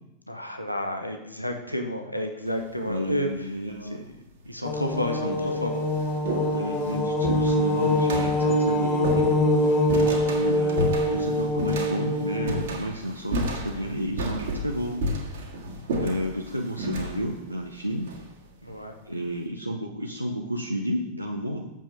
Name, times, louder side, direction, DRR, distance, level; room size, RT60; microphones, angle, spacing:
voice 1, 0.3-3.5 3.8-4.0 4.4-5.9 18.6-18.9, left 1 dB, 90° left, 4 dB, 0.9 m, -31 dB
sound 1, 2.5-2.9 3.9-4.0 4.8-4.9 5.3-18.8, equal, 60° right, 1.8 m, -33 dB
voice 2, 2.9-4.0 5.2-5.4 6.4-9.3 10.3-15.0 16.0-18.1 19.0-21.7, equal, 90° right, -1 dB, 0.8 m, -31 dB
sound 2, 4.6-12.6, left 1 dB, 25° left, 1.3 m, -24 dB
7.3 x 5.5 x 6.5 m, 0.91 s
figure-of-eight pair, 90°, 0 cm